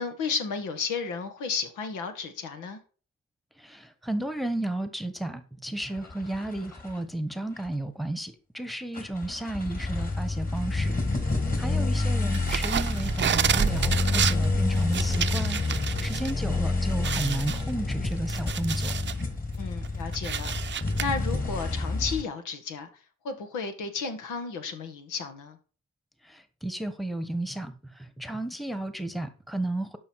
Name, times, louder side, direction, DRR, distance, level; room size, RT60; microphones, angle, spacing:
voice 1, 0.0-2.8 11.6-11.9 19.6-22.9 23.2-25.6, left 5 dB, 85° left, 2.0 m, -33 dB
voice 2, 3.6-10.9 11.6-15.6 16.0-18.9 26.3-27.7 28.0-30.0, right 1 dB, ahead, 1.3 m, -33 dB
sound 1, 5.8-6.9 7.7-7.8 9.0-22.2, left 3 dB, 30° left, 2.7 m, -28 dB
sound 2, 12.3-16.3 16.6-16.7 17.0-19.2 19.7-21.0, right 8 dB, 40° right, 0.7 m, -30 dB
12.0 x 5.7 x 4.8 m
cardioid pair, 90°, 30 cm